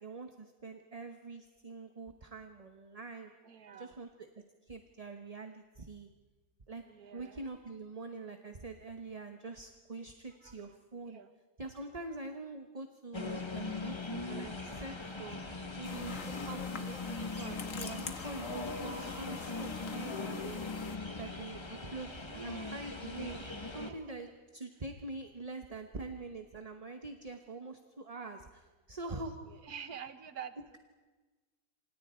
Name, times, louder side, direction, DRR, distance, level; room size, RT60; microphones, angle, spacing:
voice 1, 0.0-3.3 3.7-6.1 6.7-6.9 7.1-11.2 11.6-15.4 15.8-20.6 21.2-23.4 23.7-29.6, right 3 dB, 25° right, 6 dB, 1.0 m, -45 dB
voice 2, 3.5-4.0 6.9-7.5 10.4-10.7 11.1-11.3 18.8-19.2 19.5-19.7 22.3-23.0 23.9-24.0 29.1-29.2 29.6-30.8, right 7 dB, 65° right, 11 dB, 1.7 m, -48 dB
sound 1, 13.1-23.9, left 3 dB, 20° left, 1.3 m, -40 dB
sound 2, 15.8-21.0, left 5 dB, 55° left, 1.6 m, -45 dB
27.5 x 26.5 x 4.4 m, 1.3 s
omnidirectional pair, 1.7 m